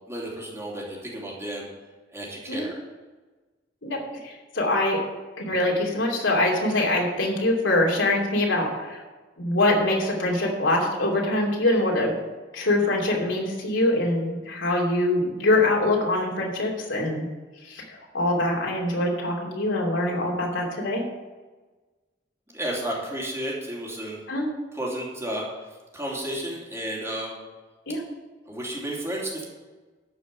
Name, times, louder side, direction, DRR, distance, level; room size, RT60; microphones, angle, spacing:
voice 1, 0.1-1.7 2.1-2.7 22.5-24.2 24.7-25.4 25.9-27.4 28.5-29.4, right 1 dB, 15° right, -3 dB, 2.9 m, -32 dB
voice 2, 3.8-5.0 5.4-9.0 9.4-12.2 12.5-17.2 17.6-21.0 24.3-24.5 27.9-28.0, left 1 dB, 90° left, -2 dB, 2.9 m, -24 dB
13.0 x 5.6 x 8.2 m, 1.3 s
head